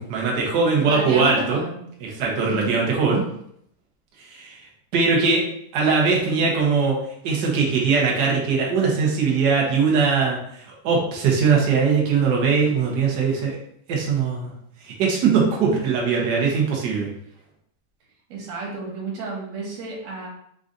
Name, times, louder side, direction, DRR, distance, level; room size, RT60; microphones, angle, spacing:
voice 1, 0.0-1.6 2.2-3.2 4.2-4.6 4.9-5.4 5.7-7.0 7.2-13.6 13.9-14.5 14.8-17.1, right 5 dB, 85° right, -2 dB, 0.9 m, -21 dB
voice 2, 0.8-1.8 2.5-2.8 18.3-20.3, right 3 dB, 65° right, -3 dB, 2.2 m, -31 dB
4.7 x 2.6 x 3.8 m, 0.71 s
omnidirectional pair, 3.4 m